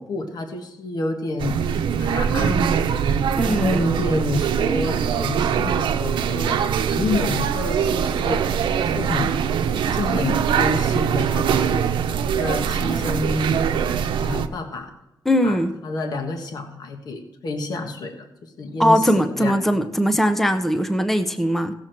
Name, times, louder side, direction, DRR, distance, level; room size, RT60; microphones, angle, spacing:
voice 1, 0.0-1.6 2.0-3.0 3.4-8.4 8.8-9.3 9.8-11.8 12.1-13.6 14.2-14.9 15.4-19.6, left 2 dB, 55° left, 4 dB, 1.4 m, -28 dB
sound 1, 1.4-14.5, right 7 dB, 85° right, 0.7 m, -22 dB
voice 2, 3.4-3.8 15.3-15.7 18.8-21.7, equal, 5° left, 8 dB, 0.7 m, -20 dB
16.5 x 7.2 x 4.5 m, 0.90 s
cardioid pair, 130°, 8 cm